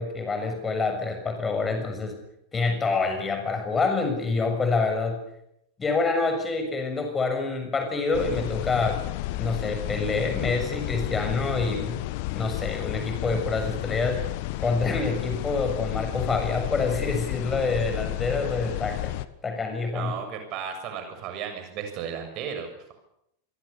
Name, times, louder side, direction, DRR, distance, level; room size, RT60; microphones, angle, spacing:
voice 1, 0.0-2.2 2.5-5.2 5.8-9.0 9.4-12.0 12.3-14.2 14.6-19.1 19.4-20.2, left 4 dB, 15° left, 6 dB, 6.7 m, -27 dB
sound 1, 8.1-19.2, left 17 dB, 45° left, 1.3 m, -32 dB
voice 2, 19.9-22.9, right 7 dB, 40° right, 6 dB, 7.0 m, -34 dB
26.5 x 23.5 x 7.0 m, 0.78 s
figure-of-eight pair, 90°, 0 cm